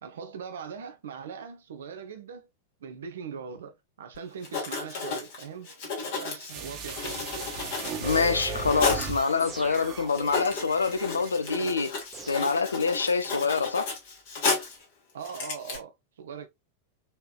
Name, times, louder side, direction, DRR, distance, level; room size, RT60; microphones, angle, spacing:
voice 1, 0.0-2.5 2.8-5.7 6.0-7.5 15.1-16.5, right 6 dB, 60° right, 0.8 m, -41 dB
Writing, 4.1-4.2 4.4-9.2 9.7-9.8 10.1-14.8 15.2-15.8, left 4 dB, 50° left, 1.8 m, -33 dB
sound 1, 6.5-11.5 11.9-12.0, right 4 dB, 40° right, 1.3 m, -37 dB
voice 2, 8.0-11.9 12.3-13.9, left 4 dB, 75° left, 0.5 m, -26 dB
sound 2, 9.4-10.6 12.1-13.4, right 3 dB, 15° right, 0.9 m, -45 dB
4.3 x 3.3 x 2.4 m
figure-of-eight pair, 90°, 0 cm